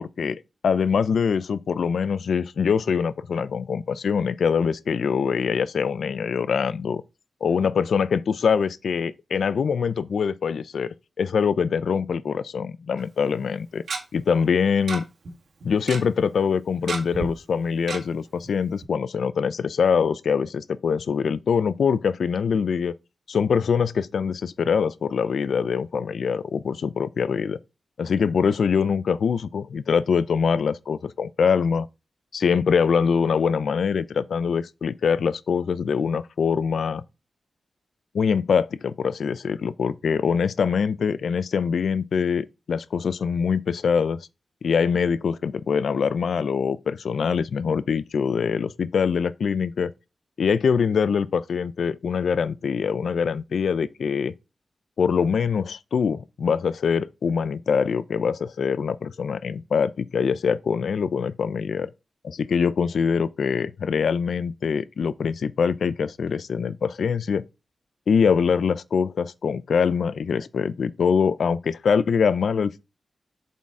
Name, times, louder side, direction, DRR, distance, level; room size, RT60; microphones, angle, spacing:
voice 1, 0.0-7.0 7.4-13.8 14.1-15.0 15.6-22.9 23.3-27.6 28.0-31.9 32.3-37.0 38.1-44.2 44.6-49.9 50.4-54.3 55.0-61.9 62.2-67.4 68.1-72.8, left 6 dB, 80° left, 0.4 m, -24 dB
Tick-tock, 13.0-13.1 13.9-14.0 14.9-15.0 15.2-15.3 15.6-16.0 16.9-17.3 17.9-18.0 18.4-18.5 18.8-18.9, right 3 dB, 75° right, 1.9 m, -30 dB
7.3 x 4.2 x 4.7 m
wide cardioid pair, 140°, 0 cm